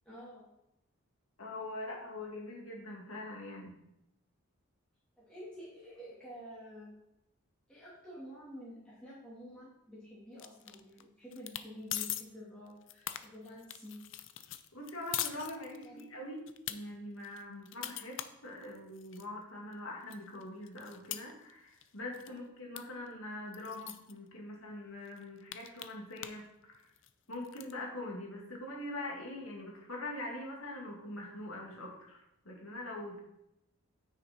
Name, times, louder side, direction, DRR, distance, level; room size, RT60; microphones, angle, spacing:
voice 1, 0.1-0.4 5.2-6.9 7.7-14.0 15.5-16.0, equal, 5° left, -9 dB, 2.3 m, -49 dB
voice 2, 1.4-3.7 14.7-26.8 27.3-33.2, left 1 dB, 75° left, -1 dB, 2.5 m, -43 dB
sound 1, 10.4-11.0 11.3-11.7 11.9-12.2 12.7-16.0 16.5-16.8 17.2-19.3 19.7-19.8 20.1-21.9 22.1-22.4 22.8-22.9 23.1-23.2 23.5-24.1 24.7-24.8 25.1-26.5 26.7-27.7, left 12 dB, 60° left, 0.5 m, -41 dB
9.3 x 6.4 x 4.3 m, 0.86 s
head